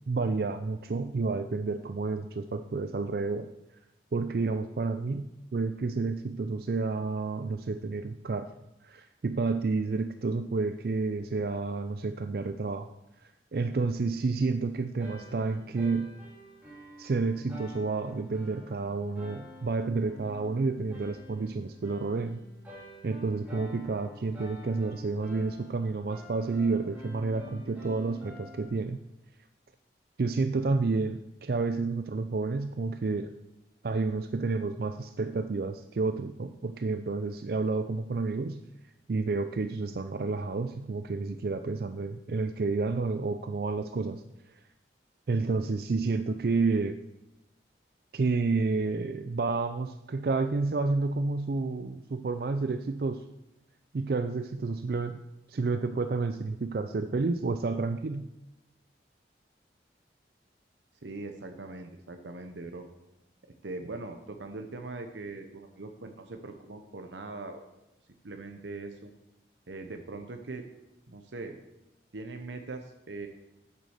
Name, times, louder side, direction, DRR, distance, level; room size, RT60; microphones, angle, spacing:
voice 1, 0.1-3.5 4.1-8.5 8.8-12.9 13.2-16.1 17.0-22.4 23.0-29.0 30.2-33.3 33.8-38.6 39.1-44.6 45.3-47.0 48.1-53.2 53.9-55.2 55.5-58.3, right 3 dB, 55° right, 10 dB, 0.4 m, -30 dB
sound 1, 15.0-28.7, equal, 10° right, 3.3 m, -49 dB
voice 2, 61.0-62.8 63.6-67.6 68.2-69.1 69.7-70.6 71.1-71.6 72.1-73.3, right 3 dB, 85° right, 5 dB, 0.9 m, -41 dB
8.3 x 7.5 x 6.4 m, 0.94 s
head